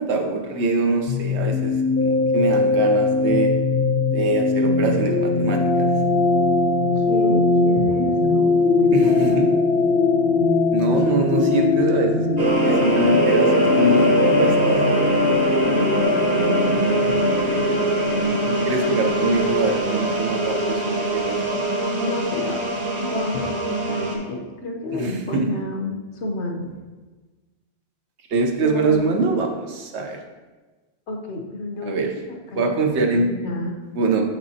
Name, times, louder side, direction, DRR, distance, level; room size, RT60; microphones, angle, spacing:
voice 1, 0.0-3.5 4.1-5.9 8.9-9.5 10.7-12.3 12.6-14.8 18.3-21.6 24.9-25.5 28.3-30.2 31.8-32.1 32.6-33.3 33.9-34.2, right 3 dB, 80° right, 3 dB, 1.0 m, -23 dB
sound 1, 1.1-20.6, left 3 dB, 60° left, 0.7 m, -21 dB
voice 2, 7.0-9.5 15.6-17.9 22.0-26.7 28.6-29.1 31.1-32.6 33.1-33.8, left 1 dB, 85° left, 1 dB, 1.1 m, -30 dB
sound 2, 12.4-24.2, right 2 dB, 40° right, 1.0 m, -22 dB
6.9 x 5.8 x 2.8 m, 1.3 s
omnidirectional pair, 1.1 m